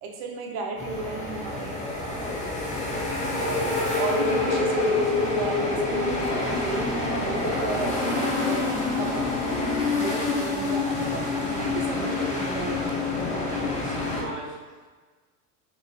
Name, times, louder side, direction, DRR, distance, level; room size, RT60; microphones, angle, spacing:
voice 1, 0.0-2.5 3.3-8.6 9.0-12.8, right 3 dB, 55° right, 1 dB, 0.8 m, -34 dB
sound 1, 0.8-14.2, left 3 dB, 15° left, 0.6 m, -27 dB
voice 2, 13.4-14.9, right 2 dB, 25° right, -5 dB, 1.5 m, -39 dB
3.0 x 2.5 x 4.0 m, 1.4 s
supercardioid pair, 110°, 48 cm